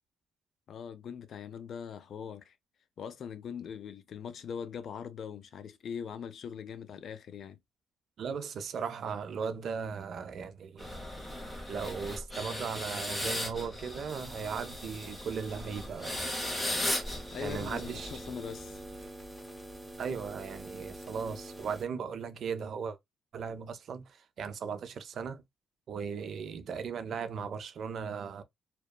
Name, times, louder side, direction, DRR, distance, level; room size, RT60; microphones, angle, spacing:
voice 1, 0.7-2.5 3.0-7.6 17.3-18.8, left 7 dB, 60° left, 0.4 m, -41 dB
voice 2, 8.2-11.0 11.7-16.4 17.4-18.1 20.0-23.0 23.3-25.4 25.9-28.4, right 6 dB, 60° right, 0.4 m, -37 dB
sound 1, 10.8-18.8, left 1 dB, 15° left, 0.9 m, -37 dB
sound 2, 14.1-21.9, right 1 dB, 5° right, 1.0 m, -47 dB
2.8 x 2.2 x 2.2 m
cardioid pair, 90°, 0 cm